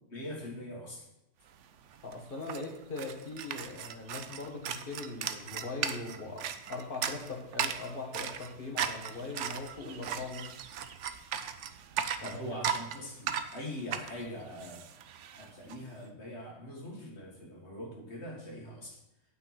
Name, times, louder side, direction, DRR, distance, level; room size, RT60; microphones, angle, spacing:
voice 1, 0.1-1.1 12.2-14.8 15.3-19.0, left 1 dB, 60° left, -2 dB, 2.4 m, -42 dB
sound 1, 1.6-1.7 1.9-15.8, right 8 dB, 75° right, 1.0 m, -37 dB
voice 2, 2.0-10.5 12.2-12.4, left 3 dB, 45° left, 1 dB, 1.9 m, -40 dB
9.0 x 6.0 x 5.9 m, 0.89 s
omnidirectional pair, 1.3 m